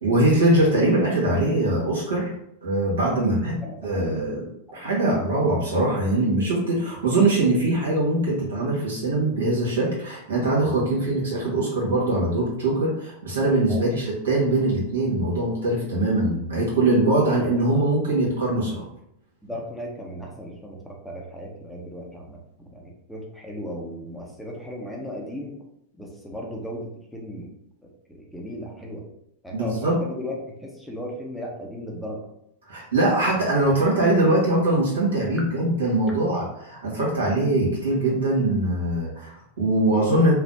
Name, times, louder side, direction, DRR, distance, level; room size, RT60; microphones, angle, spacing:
voice 1, 0.0-2.3 2.6-3.6 3.8-4.5 4.7-18.8 29.5-30.0 32.7-40.3, right 2 dB, 85° right, -5 dB, 1.3 m, -22 dB
voice 2, 3.1-4.2 4.7-5.0 13.7-13.9 19.4-22.4 22.7-25.5 25.9-27.5 27.8-29.0 29.4-30.4 30.6-32.2, equal, ahead, -2 dB, 0.6 m, -36 dB
3.2 x 2.0 x 2.6 m, 0.77 s
hypercardioid pair, 105°, 0 cm